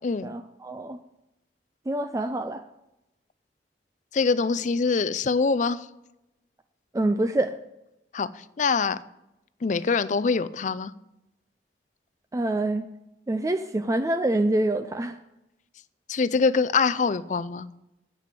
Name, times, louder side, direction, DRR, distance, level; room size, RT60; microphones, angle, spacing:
voice 1, 0.2-1.0 1.9-2.6 6.9-7.5 12.3-12.9 13.3-15.2, right 1 dB, 20° right, 9 dB, 0.4 m, -26 dB
voice 2, 4.1-5.9 8.1-9.0 9.6-10.9 16.1-17.7, left 4 dB, 45° left, 15 dB, 0.4 m, -24 dB
9.3 x 8.4 x 6.8 m, 0.89 s
head